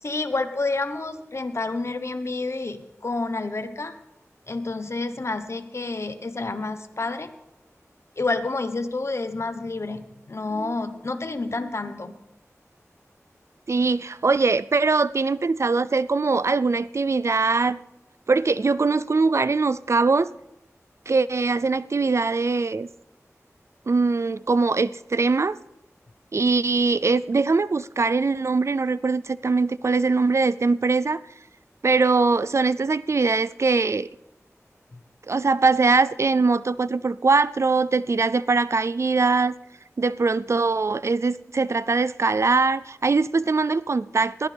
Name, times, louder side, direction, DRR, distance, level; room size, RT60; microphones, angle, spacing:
voice 1, 0.0-4.0 4.5-7.3 8.2-12.2 34.9-35.0, left 3 dB, 55° left, 1.1 m, -29 dB
voice 2, 13.7-17.8 18.3-20.3 21.1-22.9 23.9-25.6 26.3-31.2 31.8-34.1 35.3-39.5 40.0-44.5, right 4 dB, 60° right, 0.4 m, -22 dB
21.0 x 14.5 x 3.5 m
wide cardioid pair, 70°, 6 cm